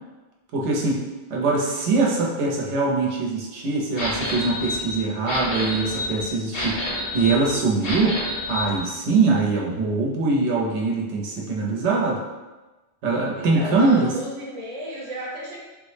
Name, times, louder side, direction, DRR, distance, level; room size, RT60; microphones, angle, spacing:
voice 1, 0.5-1.0 1.3-6.8 7.1-8.2 8.5-12.2 13.0-14.1, right 3 dB, 85° right, -2 dB, 0.9 m, -22 dB
sound 1, 4.0-8.8, left 1 dB, 60° left, 0.9 m, -29 dB
voice 2, 13.3-15.6, equal, 40° right, -5 dB, 0.8 m, -33 dB
3.6 x 2.0 x 3.1 m, 1.1 s
omnidirectional pair, 1.1 m